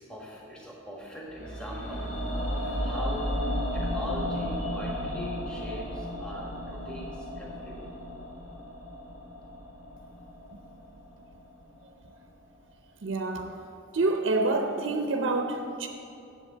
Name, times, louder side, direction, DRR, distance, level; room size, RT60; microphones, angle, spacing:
voice 1, 0.0-7.9, equal, 5° left, -4 dB, 1.4 m, -41 dB
sound 1, 1.3-11.4 11.7-11.8, equal, 75° left, 2.4 m, -34 dB
voice 2, 13.0-13.6 13.9-15.9, right 2 dB, 70° right, 5 dB, 0.6 m, -27 dB
7.6 x 7.2 x 8.2 m, 2.7 s
head